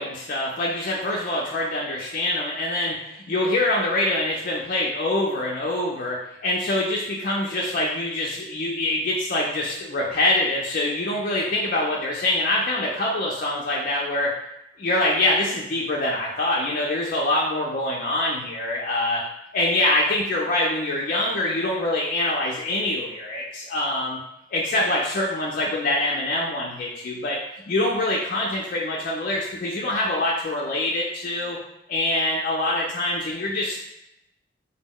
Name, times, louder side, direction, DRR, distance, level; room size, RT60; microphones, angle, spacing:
voice 1, 0.0-14.3 14.8-19.2 19.5-24.2 24.5-27.4 27.7-31.6 31.9-33.8, left 1 dB, 50° left, -4 dB, 0.4 m, -25 dB
2.1 x 2.1 x 3.5 m, 0.85 s
head